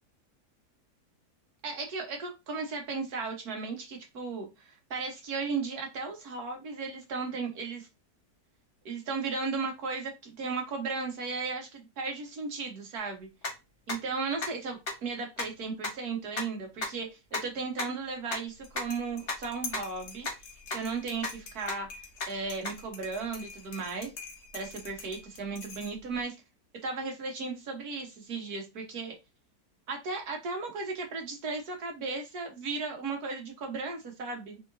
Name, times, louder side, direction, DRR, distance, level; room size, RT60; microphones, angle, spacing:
voice 1, 1.6-7.9 8.8-13.3 13.9-20.3 20.7-21.9 22.3-24.1 24.5-26.4 26.8-29.1 29.9-34.6, right 4 dB, 65° right, 2 dB, 1.6 m, -35 dB
sound 1, 13.4-13.5 13.9-14.0 14.4-14.5 14.9-15.0 15.4-15.5 15.8-15.9 16.3-16.4 16.8-16.9 17.3-17.4 17.8-17.9 18.3-18.4 18.8-18.9 19.3-19.4 19.7-19.8 20.2-20.3 20.7-20.8 21.2-21.3 21.7-21.8 22.2-22.3 22.6-22.7, left 2 dB, 35° left, 1.3 m, -32 dB
sound 2, 18.5-26.2, left 5 dB, 70° left, 1.6 m, -46 dB
3.9 x 3.4 x 2.6 m, 0.24 s
omnidirectional pair, 1.8 m